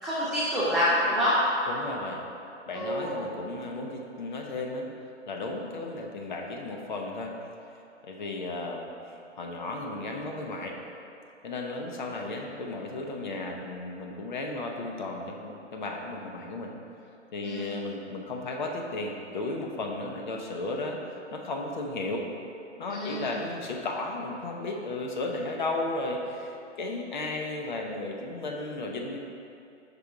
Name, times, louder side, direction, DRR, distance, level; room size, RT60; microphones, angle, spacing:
voice 1, 0.0-1.6 2.7-3.2 17.4-17.7 22.9-23.3, equal, 5° right, -18 dB, 0.4 m, -26 dB
voice 2, 1.7-2.2 2.7-4.9 5.3-7.3 8.0-10.8 11.4-16.7 17.3-21.0 21.3-22.3 22.8-29.2, left 2 dB, 40° left, 1 dB, 0.6 m, -34 dB
5.2 x 4.1 x 4.6 m, 2.6 s
hypercardioid pair, 155°, 36 cm